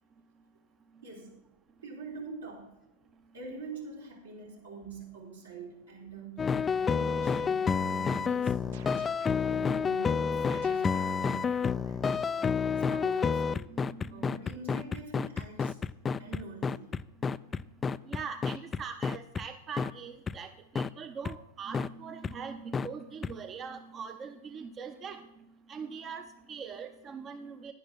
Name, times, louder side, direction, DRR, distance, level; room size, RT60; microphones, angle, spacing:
voice 1, 1.0-1.4 1.8-2.7 3.3-13.7 14.1-15.8 16.2-17.0, right 4 dB, 80° right, -2 dB, 3.7 m, -46 dB
sound 1, 6.4-19.4 19.8-19.9 20.3-20.4 20.7-20.9 21.2-21.3 21.7-21.9 22.2-22.3 22.7-22.9 23.2-23.3, left 5 dB, 20° left, 0.3 m, -29 dB
sound 2, 6.5-12.7, right 8 dB, 65° right, 0.8 m, -54 dB
voice 2, 13.7-14.3 18.1-25.2 25.7-27.7, right 6 dB, 30° right, 8 dB, 0.7 m, -42 dB
10.5 x 10.5 x 4.3 m, 0.92 s
figure-of-eight pair, 95°, 0 cm